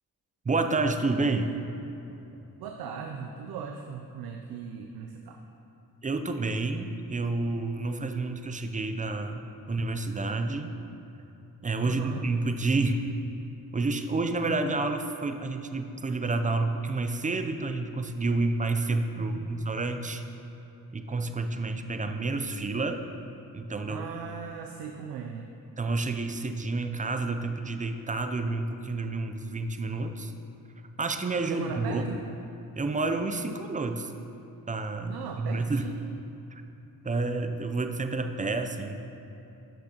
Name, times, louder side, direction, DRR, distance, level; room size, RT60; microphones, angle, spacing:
voice 1, 0.4-1.5 6.0-10.7 11.6-13.0 13.7-20.2 20.9-23.0 23.5-24.0 25.8-30.3 31.0-32.1 32.8-34.1 34.7-35.9 36.5-36.6 37.0-38.9, right 3 dB, 20° right, 7 dB, 0.5 m, -29 dB
voice 2, 2.6-5.4 11.8-12.3 19.1-19.7 23.9-25.5 31.4-32.2 35.0-36.0, right 6 dB, 85° right, 3 dB, 0.6 m, -39 dB
11.5 x 6.2 x 2.9 m, 2.9 s
cardioid pair, 75°, 37 cm